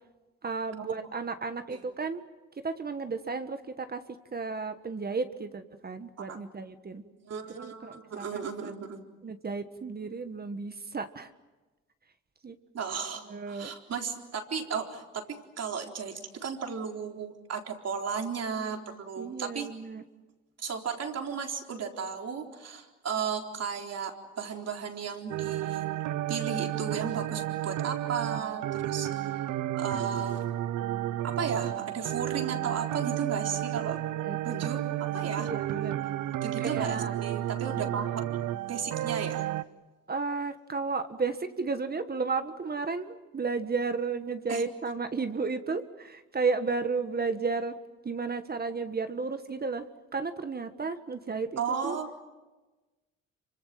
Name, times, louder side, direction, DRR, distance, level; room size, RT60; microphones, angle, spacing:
voice 1, 0.4-2.2 2.6-4.0 4.3-7.0 7.5-8.7 9.2-11.3 12.4-12.6 13.3-13.7 19.2-20.0 33.9-34.0 34.2-34.7 35.4-36.0 36.6-37.1 40.1-47.8 48.0-49.9 50.1-52.0, right 4 dB, 30° right, 9 dB, 1.6 m, -33 dB
voice 2, 7.2-9.0 12.7-19.7 20.6-25.9 26.3-29.3 29.7-30.5 31.2-34.0 34.4-35.5 36.4-38.4 38.7-39.5 44.5-44.6 51.6-52.1, right 6 dB, 55° right, 3 dB, 4.1 m, -35 dB
sound 1, 25.3-39.6, right 13 dB, 80° right, 0.9 m, -32 dB
27.5 x 25.0 x 7.6 m, 1.2 s
cardioid pair, 90°, 30 cm